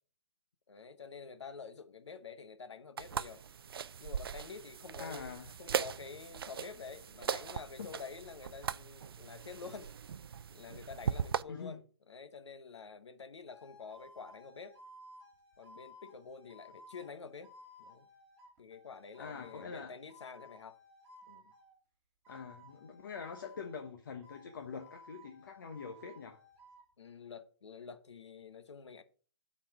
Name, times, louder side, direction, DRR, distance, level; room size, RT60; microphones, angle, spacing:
voice 1, 0.7-3.4 4.0-9.9 10.5-14.8 15.6-17.5 17.8-18.1 18.6-20.8 21.3-21.5 27.0-29.0, left 5 dB, 80° left, 1.1 m, -48 dB
sound 1, 3.0-11.4, right 7 dB, 55° right, 0.4 m, -39 dB
voice 2, 5.0-5.5 7.8-7.9 11.5-11.8 19.2-20.0 22.3-26.4, left 5 dB, 45° left, 0.9 m, -44 dB
sound 2, 13.5-21.8 22.2-23.9 24.2-26.9, left 1 dB, 15° right, 2.5 m, -57 dB
8.2 x 4.2 x 6.6 m
hypercardioid pair, 170°, 15 cm